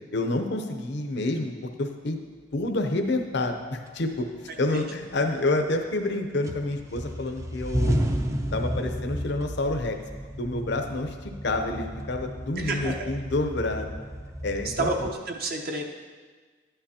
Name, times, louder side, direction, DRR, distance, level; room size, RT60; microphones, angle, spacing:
voice 1, 0.1-1.5 1.8-2.2 2.5-8.0 8.5-10.0 10.4-13.9 14.4-14.9, left 2 dB, 60° left, 5 dB, 0.7 m, -28 dB
sound 1, 3.2-3.3 3.9-4.6 5.0-6.1 6.4-15.1, equal, 15° right, 0.4 m, -33 dB
voice 2, 12.6-13.0 14.6-15.8, right 2 dB, 50° right, 2 dB, 0.8 m, -29 dB
11.5 x 8.9 x 2.9 m, 1.5 s
head